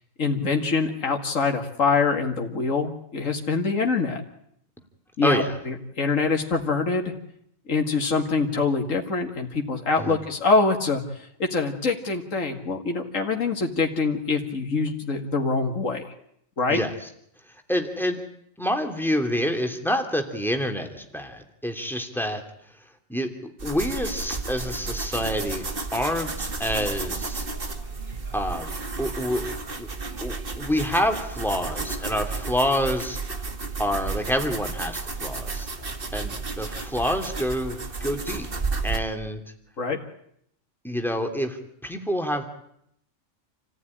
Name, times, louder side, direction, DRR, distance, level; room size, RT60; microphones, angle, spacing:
voice 1, 0.2-4.2 5.2-7.1 7.7-16.0 16.6-16.8 39.8-40.0, left 4 dB, 70° left, 3 dB, 2.5 m, -24 dB
voice 2, 5.2-5.6 10.0-10.2 16.7-16.9 17.7-18.2 18.6-22.4 23.1-25.7 25.9-27.4 28.3-28.7 29.0-29.5 29.8-29.9 30.2-33.2 33.8-35.7 36.1-38.5 38.8-39.4 40.8-41.6 41.8-42.4, equal, ahead, 5 dB, 3.0 m, -27 dB
sound 1, 23.6-39.0, right 4 dB, 45° right, 2.1 m, -32 dB
29.0 x 15.5 x 10.0 m, 0.73 s
omnidirectional pair, 1.4 m